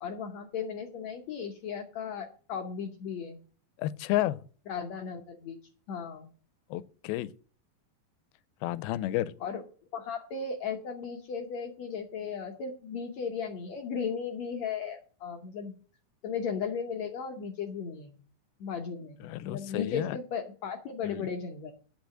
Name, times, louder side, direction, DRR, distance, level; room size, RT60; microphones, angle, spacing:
voice 1, 0.0-3.4 4.7-5.6 5.9-6.3 9.4-9.6 9.9-15.7 16.2-18.2 18.6-21.7, left 6 dB, 70° left, 1.7 m, -36 dB
voice 2, 3.8-4.4 6.7-7.3 8.6-9.3 19.2-20.2 21.0-21.3, left 15 dB, 85° left, 2.5 m, -31 dB
10.5 x 5.7 x 7.4 m
omnidirectional pair, 4.3 m